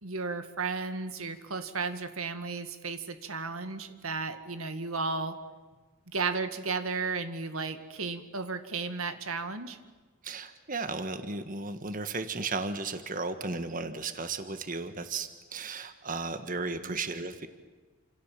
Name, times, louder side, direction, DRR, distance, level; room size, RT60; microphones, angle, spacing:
voice 1, 0.0-5.4 6.1-9.8 16.8-17.0, right 4 dB, 90° right, 9 dB, 2.1 m, -34 dB
voice 2, 10.2-17.5, right 3 dB, 40° right, 9 dB, 1.5 m, -35 dB
29.0 x 27.5 x 7.5 m, 1.3 s
head